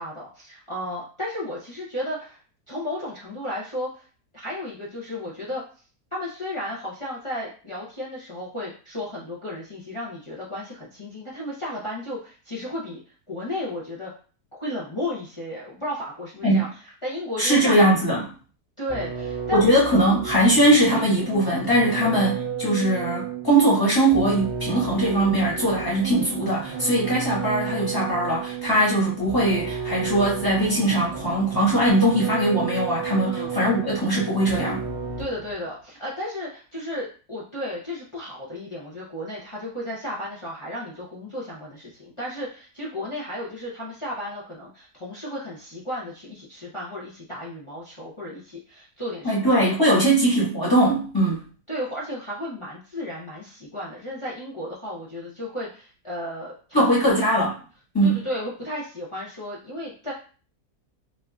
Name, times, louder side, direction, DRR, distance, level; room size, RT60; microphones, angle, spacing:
voice 1, 0.0-2.4 2.7-4.1 4.3-5.6 6.1-13.0 13.3-14.1 14.5-16.7 17.0-17.8 18.8-19.8 21.9-22.1 33.2-33.6 35.2-49.9 51.7-57.2 58.0-60.1, left 1 dB, 45° left, -6 dB, 0.3 m, -34 dB
voice 2, 17.4-18.3 19.5-34.8 49.2-51.4 56.7-57.5 57.9-58.2, right 1 dB, 15° left, -6 dB, 1.2 m, -21 dB
sound 1, 18.9-35.5, right 6 dB, 45° right, 1.1 m, -32 dB
4.3 x 2.5 x 2.3 m, 0.39 s
omnidirectional pair, 1.7 m